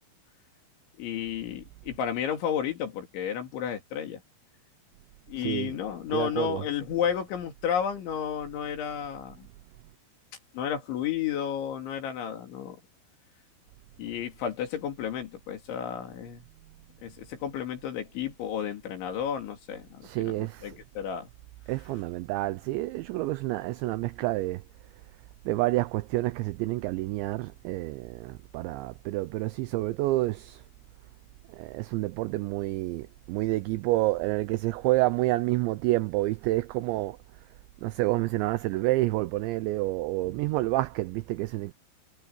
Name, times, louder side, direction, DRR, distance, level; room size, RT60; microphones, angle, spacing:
voice 1, 1.0-4.2 5.3-9.5 10.5-12.8 14.0-16.5 17.0-21.3, left 8 dB, 65° left, 5.1 m, -32 dB
voice 2, 5.4-5.7 6.1-6.6 20.0-20.8 21.7-24.6 25.5-30.6 31.5-37.2 37.8-41.7, right 19 dB, 90° right, 2.5 m, -28 dB
omnidirectional pair, 5.9 m